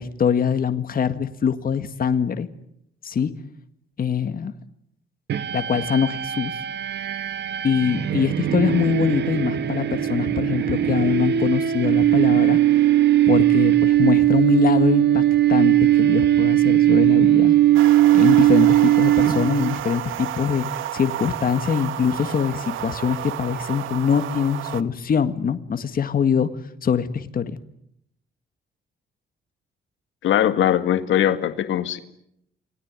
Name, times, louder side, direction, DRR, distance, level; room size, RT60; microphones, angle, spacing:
voice 1, 0.0-2.5 3.0-3.3 4.0-4.5 5.5-6.7 7.6-12.6 13.3-15.2 15.5-17.6 18.1-26.5 26.8-27.6, left 7 dB, 45° left, 9 dB, 1.9 m, -23 dB
sound 1, 5.3-19.8, right 13 dB, 60° right, 1.6 m, -19 dB
ЗАБ лонг хай, 17.7-24.8, right 12 dB, 80° right, 1.3 m, -31 dB
voice 2, 30.2-32.0, left 10 dB, 80° left, 10 dB, 2.0 m, -20 dB
28.5 x 20.0 x 9.7 m, 0.76 s
cardioid pair, 90°, 20 cm